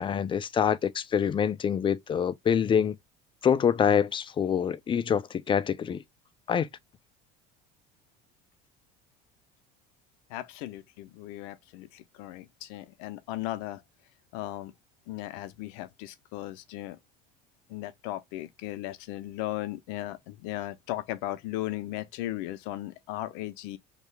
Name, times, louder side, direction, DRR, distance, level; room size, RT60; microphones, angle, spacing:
voice 1, 0.0-3.0 3.4-6.0 6.5-6.7, left 8 dB, 25° left, 0.3 m, -25 dB
voice 2, 10.3-13.8 14.3-14.7 15.1-17.0 17.7-23.8, left 15 dB, 80° left, 0.6 m, -36 dB
2.8 x 2.4 x 3.2 m
supercardioid pair, 95°, 21 cm